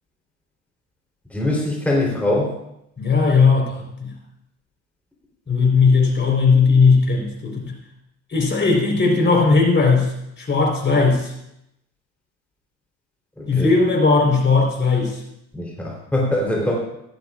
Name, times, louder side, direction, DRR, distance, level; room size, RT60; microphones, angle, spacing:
voice 1, 1.3-2.5 13.4-13.7 15.5-16.7, left 1 dB, 5° left, -2 dB, 3.5 m, -22 dB
voice 2, 3.0-4.1 5.5-7.7 8.3-11.3 13.5-15.2, left 4 dB, 25° left, 0 dB, 4.1 m, -17 dB
17.0 x 13.0 x 2.5 m, 0.82 s
hypercardioid pair, 70°, 41 cm